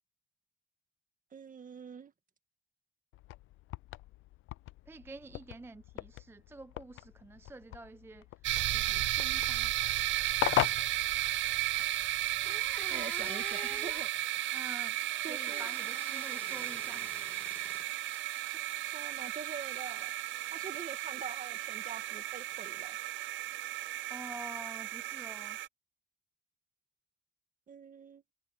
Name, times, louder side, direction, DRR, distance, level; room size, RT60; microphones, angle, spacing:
voice 1, 1.3-2.1 12.9-14.1 15.2-15.7 18.4-20.1 20.5-23.0 27.7-28.2, right 6 dB, 40° right, 1.9 m, -45 dB
sound 1, 3.1-11.8, left 15 dB, 85° left, 0.7 m, -39 dB
voice 2, 4.9-8.3 8.7-9.7 14.5-17.1 24.1-25.6, right 2 dB, 10° right, 0.4 m, -48 dB
sound 2, 8.4-25.7, right 14 dB, 70° right, 0.5 m, -34 dB
sound 3, 12.0-12.1 12.4-14.2 15.1-17.9 18.1-18.9, left 1 dB, 5° left, 2.2 m, -47 dB
cardioid pair, 90°, 20 cm